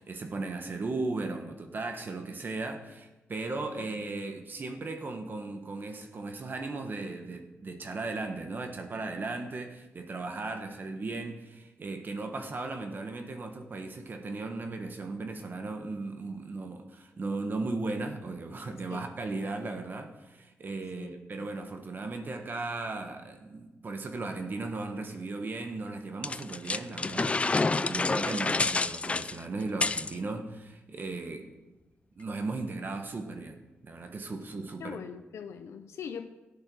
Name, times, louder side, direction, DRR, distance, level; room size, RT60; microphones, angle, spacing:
voice 1, 0.0-31.5 32.2-33.6 33.8-35.0, right 3 dB, 45° right, 5 dB, 1.3 m, -36 dB
voice 2, 3.5-4.1 18.9-19.1 21.0-21.5 34.8-36.3, left 7 dB, 80° left, 8 dB, 0.7 m, -42 dB
sound 1, 26.2-30.1, left 3 dB, 25° left, 0.5 m, -28 dB
13.0 x 8.8 x 6.2 m, 1.1 s
cardioid pair, 90°, 5 cm